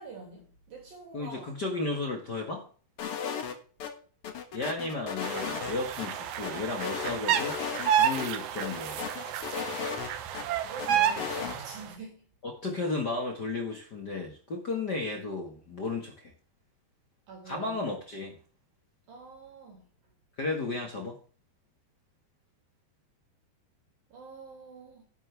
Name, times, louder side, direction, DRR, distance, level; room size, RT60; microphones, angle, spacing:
voice 1, 0.0-1.5 3.2-3.6 10.4-12.3 17.3-17.8 19.1-19.9 24.1-25.0, right 3 dB, 55° right, 4.5 m, -45 dB
voice 2, 1.1-2.7 4.5-7.6 7.9-9.0 12.4-16.3 17.4-18.4 20.4-21.2, left 3 dB, 60° left, 1.1 m, -34 dB
sound 1, 3.0-3.9 4.2-6.1 6.4-7.9 8.2-8.3 8.6-10.4 10.8-11.6, left 7 dB, 90° left, 1.2 m, -35 dB
sound 2, 5.2-11.8, right 9 dB, 70° right, 1.8 m, -30 dB
12.5 x 11.0 x 3.5 m
omnidirectional pair, 5.0 m